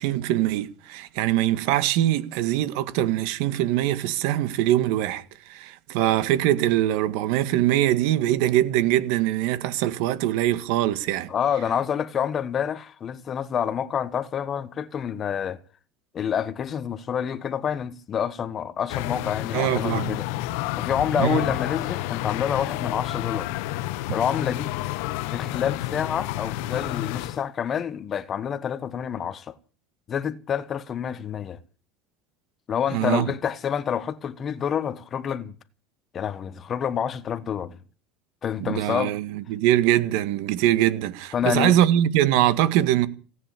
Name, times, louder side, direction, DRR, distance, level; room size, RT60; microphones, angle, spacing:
voice 1, 0.0-11.3 19.5-20.2 21.2-21.4 32.9-33.3 38.6-43.1, right 13 dB, 70° right, 1.8 m, -23 dB
voice 2, 11.3-15.6 16.1-20.3 20.8-23.5 24.1-24.7 25.3-29.5 30.1-31.6 32.7-35.5 36.1-37.8 38.4-39.1 41.3-41.8, left 8 dB, 30° left, 1.1 m, -28 dB
sound 1, 18.9-27.4, left 15 dB, 75° left, 0.9 m, -30 dB
17.0 x 10.0 x 8.5 m
cardioid pair, 140°, 0 cm